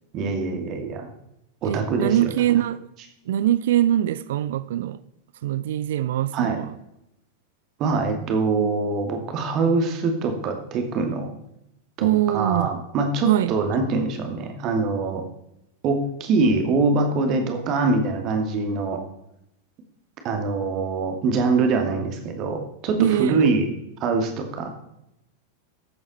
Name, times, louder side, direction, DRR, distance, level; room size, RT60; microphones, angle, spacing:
voice 1, 0.1-1.1 1.6-2.3 6.3-6.6 7.8-11.3 12.0-15.2 15.8-19.0 20.2-23.6 24.0-24.8, right 3 dB, 35° right, 2.4 m, -24 dB
voice 2, 1.6-2.9 3.3-5.0 5.4-6.8 12.0-12.7 13.2-13.5 23.0-23.4, right 12 dB, 55° right, 0.5 m, -22 dB
14.0 x 8.7 x 4.2 m
figure-of-eight pair, 90°, 0 cm